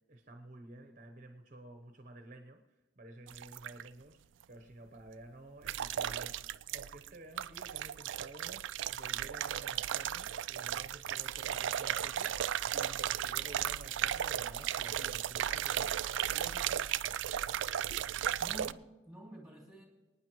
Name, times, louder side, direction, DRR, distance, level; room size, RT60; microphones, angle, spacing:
voice 1, 0.1-2.6 3.0-4.2 4.5-16.0 16.3-17.0, right 2 dB, 45° right, 6 dB, 0.9 m, -52 dB
sound 1, 3.3-3.9 5.6-7.1 7.4-18.7, right 10 dB, 90° right, 0.4 m, -35 dB
voice 2, 18.4-19.9, right 1 dB, ahead, -1 dB, 2.9 m, -49 dB
25.0 x 9.6 x 3.1 m, 1.2 s
head